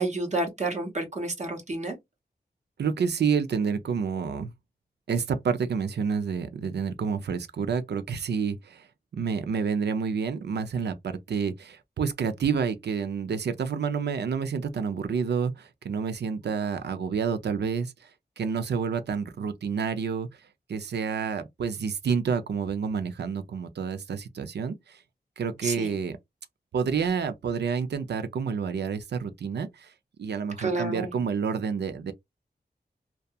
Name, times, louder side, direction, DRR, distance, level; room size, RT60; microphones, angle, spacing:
voice 1, 0.0-2.0 25.6-26.0 30.6-31.1, right 2 dB, 40° right, 0.8 m, -30 dB
voice 2, 2.8-4.5 5.1-8.9 9.1-17.9 18.4-20.3 20.7-25.0 25.4-26.2 26.7-29.9 30.2-32.1, right 6 dB, 80° right, 0.4 m, -29 dB
2.7 x 2.2 x 2.2 m
wide cardioid pair, 115°, 17 cm